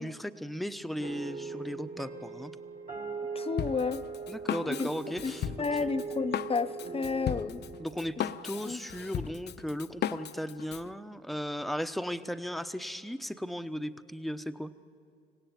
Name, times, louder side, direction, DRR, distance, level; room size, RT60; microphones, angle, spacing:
voice 1, 0.0-2.5 4.3-5.5 7.8-14.7, equal, ahead, 10 dB, 0.9 m, -36 dB
sound 1, 1.0-9.5, right 4 dB, 40° right, 2.0 m, -41 dB
voice 2, 3.3-4.0 4.6-4.9 5.2-5.3 5.6-7.6 8.6-8.8, left 4 dB, 30° left, 11 dB, 1.0 m, -31 dB
Drum kit, 3.6-10.9, left 9 dB, 55° left, 0.7 m, -36 dB
25.5 x 17.0 x 9.2 m, 2.3 s
cardioid pair, 90°, 20 cm